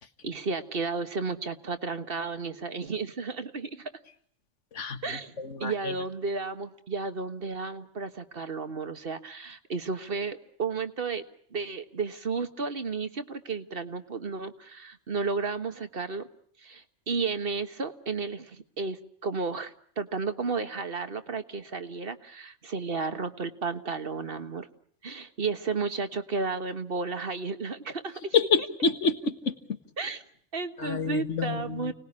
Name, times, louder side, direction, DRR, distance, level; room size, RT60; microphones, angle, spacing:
voice 1, 0.2-3.9 5.0-11.2 11.5-16.3 16.6-24.7 25.0-28.4 30.0-30.2 30.5-31.9, right 4 dB, 50° right, 9 dB, 1.6 m, -33 dB
voice 2, 5.4-5.9 28.3-29.6 30.8-31.9, left 5 dB, 85° left, 9 dB, 1.9 m, -27 dB
29.5 x 19.5 x 9.8 m, 0.63 s
omnidirectional pair, 1.2 m